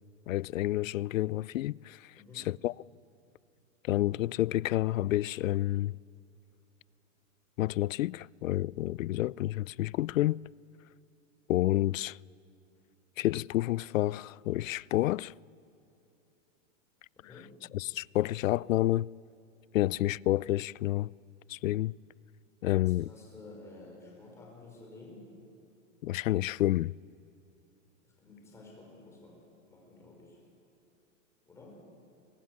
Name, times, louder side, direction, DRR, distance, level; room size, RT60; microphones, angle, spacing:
voice 1, 0.3-2.7 3.8-6.0 7.6-10.4 11.5-12.2 13.2-15.3 17.7-19.1 19.7-21.1 21.5-21.9 22.6-23.1 26.0-26.9, left 15 dB, 80° left, 0.5 m, -29 dB
voice 2, 2.1-2.5 17.2-17.6 22.8-25.3 28.0-30.4 31.4-31.9, left 2 dB, 5° left, 5.0 m, -52 dB
24.0 x 20.5 x 9.7 m
supercardioid pair, 175°, 39 cm